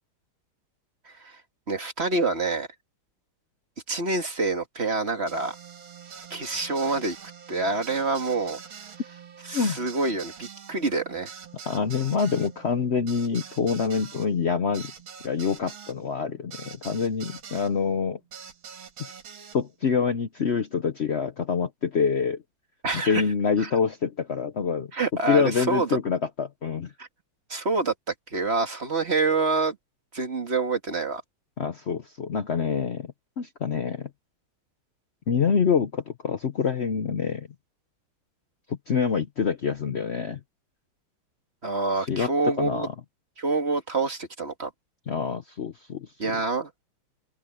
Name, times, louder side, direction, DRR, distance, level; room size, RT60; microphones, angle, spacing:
voice 1, 1.1-1.4 1.7-2.7 3.9-5.5 6.3-7.2 7.5-8.6 9.5-11.3 22.8-23.2 23.6-23.7 24.9-26.0 27.0-27.1 27.5-27.9 28.3-29.8 30.1-31.2 41.6-42.9 43.4-44.7 46.2-46.7, right 3 dB, 30° right, 2.1 m, -26 dB
sound 1, 5.3-17.7 18.3-19.6, right 7 dB, 65° right, 2.5 m, -44 dB
voice 2, 11.7-14.9 15.2-18.2 19.0-19.1 19.5-22.4 23.1-24.9 25.3-26.9 31.6-34.1 35.3-37.5 38.7-40.4 42.0-42.9 45.1-46.4, left 6 dB, 85° left, 0.5 m, -26 dB
open air
omnidirectional pair, 2.4 m